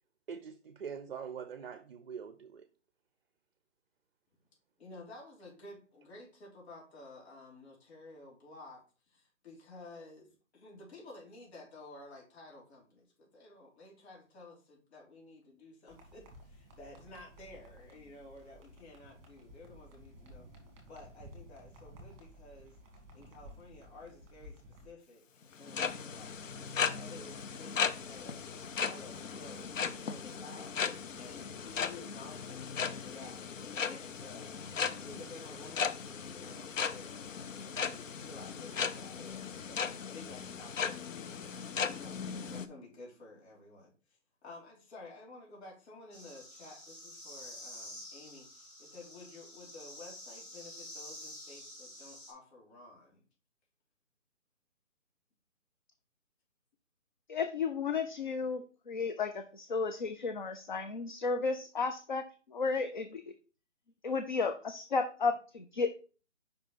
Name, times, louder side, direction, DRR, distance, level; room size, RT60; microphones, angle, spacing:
voice 1, 0.3-2.7, right 7 dB, 50° right, 0.5 m, -43 dB
voice 2, 4.8-10.3 10.5-20.5 20.9-22.8 23.1-25.2 25.6-26.4 26.8-28.5 28.8-30.8 31.1-34.6 35.0-41.6 42.0-53.2, left 2 dB, 55° left, 3.1 m, -53 dB
sound 1, 15.9-24.9, equal, 20° right, 2.2 m, -55 dB
sound 2, 25.5-42.7, left 6 dB, 85° left, 0.7 m, -37 dB
sound 3, 46.1-52.3, left 1 dB, 25° left, 2.5 m, -49 dB
voice 3, 57.3-62.2 62.5-63.2 64.0-66.0, left 4 dB, 40° left, 0.4 m, -33 dB
5.5 x 4.3 x 4.0 m
hypercardioid pair, 155°, 38 cm